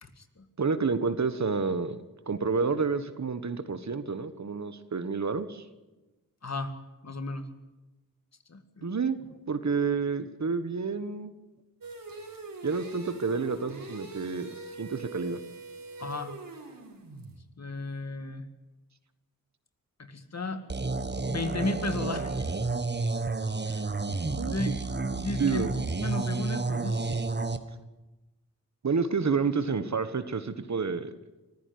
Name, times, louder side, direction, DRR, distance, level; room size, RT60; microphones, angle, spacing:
voice 1, 0.0-0.5 6.4-6.8 7.0-7.5 8.5-8.9 16.0-16.3 17.6-18.5 20.0-20.7 21.3-22.6 23.6-23.8 24.4-24.8 25.2-27.2, left 3 dB, 50° left, 9 dB, 2.1 m, -35 dB
voice 2, 0.6-2.0 2.3-5.6 8.8-9.2 9.5-11.3 12.6-15.4 24.4-24.7 25.4-25.7 28.8-31.1, right 5 dB, 50° right, 12 dB, 1.5 m, -29 dB
sound 1, 11.8-17.4, right 3 dB, 70° right, 4.8 m, -43 dB
sound 2, 20.7-27.6, right 3 dB, 30° right, 1.4 m, -30 dB
24.0 x 14.5 x 9.5 m, 1.1 s
cardioid pair, 60°, 35 cm